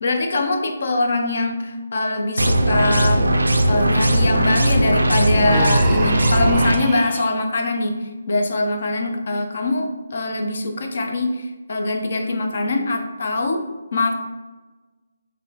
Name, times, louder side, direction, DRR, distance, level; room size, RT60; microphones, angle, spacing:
voice 1, 0.0-3.3 3.7-13.7 13.9-14.2, left 2 dB, 55° left, 4 dB, 0.5 m, -23 dB
sound 1, 2.4-6.8, right 1 dB, 90° right, 0.4 m, -18 dB
Human voice, 5.5-7.4, right 3 dB, 20° right, 0.3 m, -28 dB
4.8 x 2.6 x 2.7 m, 1.2 s
figure-of-eight pair, 150°, 0 cm